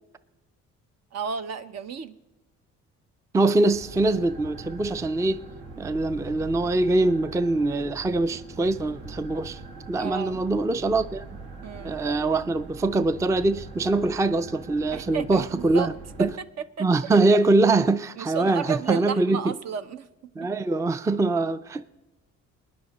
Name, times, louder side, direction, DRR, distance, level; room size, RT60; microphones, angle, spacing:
voice 1, 1.1-2.1 10.0-10.4 11.6-11.9 14.9-15.9 16.2-16.4 16.8-17.2 18.2-20.1, right 7 dB, 60° right, 0.8 m, -32 dB
voice 2, 3.3-5.4 5.8-9.6 9.9-11.3 11.8-15.9 16.2-16.3 16.8-19.5 20.4-21.8, right 2 dB, 10° right, 0.4 m, -23 dB
sound 1, 3.7-16.4, right 3 dB, 75° right, 1.8 m, -42 dB
21.5 x 10.0 x 4.1 m
cardioid pair, 90°, 30 cm